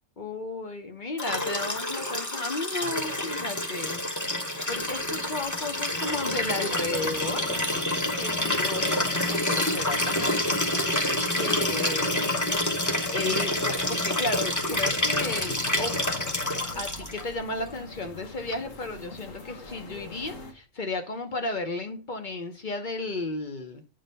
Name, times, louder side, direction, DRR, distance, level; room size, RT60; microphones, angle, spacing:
voice 1, 0.2-4.4 4.7-7.5 8.1-11.1 11.3-12.4 13.1-16.0 16.8-23.8, left 2 dB, 40° left, 0.9 m, -34 dB
Liquid, 1.2-17.2 18.5-18.6, left 1 dB, 15° left, 0.9 m, -28 dB
sound 1, 4.7-20.5, left 3 dB, 70° left, 1.6 m, -46 dB
8.5 x 3.9 x 5.3 m
omnidirectional pair, 1.4 m